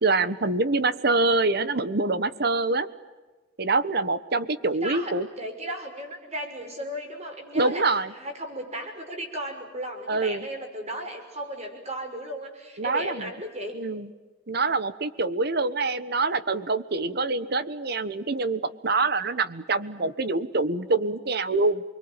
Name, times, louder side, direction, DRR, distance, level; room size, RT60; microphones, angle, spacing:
voice 1, 0.0-2.9 3.6-5.3 7.5-8.1 10.1-10.4 12.8-13.3 13.7-14.1 14.5-21.8, right 3 dB, 55° right, 14 dB, 1.2 m, -25 dB
voice 2, 4.8-5.1 5.4-13.8, right 1 dB, 35° right, 4 dB, 5.8 m, -35 dB
29.0 x 22.5 x 9.0 m, 1.2 s
head